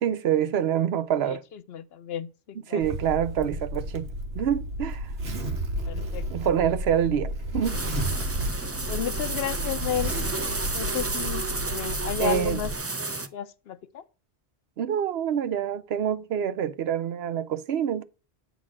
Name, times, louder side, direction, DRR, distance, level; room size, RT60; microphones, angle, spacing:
voice 1, 0.0-1.4 2.7-5.1 6.3-7.8 12.2-12.6 14.8-18.0, right 9 dB, 70° right, 0.8 m, -26 dB
voice 2, 1.5-2.8 5.9-6.3 8.9-10.1 10.7-12.7 13.3-14.0, left 9 dB, 70° left, 0.8 m, -32 dB
Zipper (clothing), 2.8-12.7, equal, 90° right, 1.8 m, -32 dB
sound 1, 7.6-13.3, right 3 dB, 20° right, 0.4 m, -32 dB
8.6 x 4.0 x 6.1 m
omnidirectional pair, 1.1 m